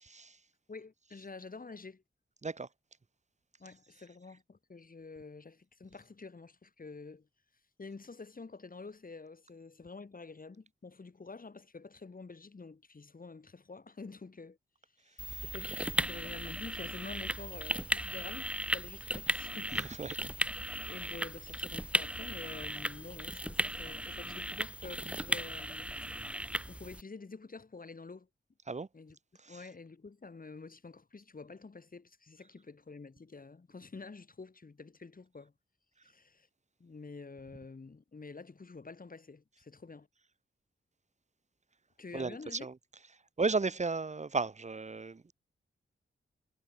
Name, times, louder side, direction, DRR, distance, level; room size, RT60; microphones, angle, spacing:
voice 1, 0.0-0.4 2.4-2.7 15.3-15.4 19.7-20.2 28.7-28.9 29.4-29.6 42.1-42.7 43.4-45.3, right 4 dB, 35° right, 1.4 m, -34 dB
voice 2, 0.7-2.0 3.6-7.3 7.8-14.6 15.0-19.9 20.9-28.3 28.9-29.2 29.5-35.5 36.0-36.5 36.8-40.1 42.0-42.7, left 4 dB, 40° left, 5.8 m, -48 dB
sound 1, 15.2-27.0, right 1 dB, 5° right, 2.7 m, -36 dB
cardioid pair, 80°, 21 cm